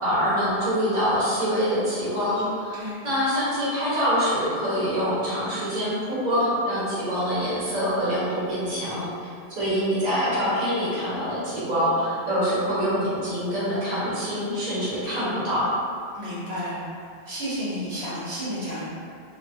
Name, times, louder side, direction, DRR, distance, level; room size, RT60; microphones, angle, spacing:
voice 1, 0.0-9.1 9.5-15.7, equal, 45° right, -11 dB, 1.1 m, -25 dB
voice 2, 16.1-18.9, equal, 80° right, -11 dB, 1.3 m, -32 dB
2.6 x 2.4 x 2.7 m, 2.3 s
omnidirectional pair, 1.1 m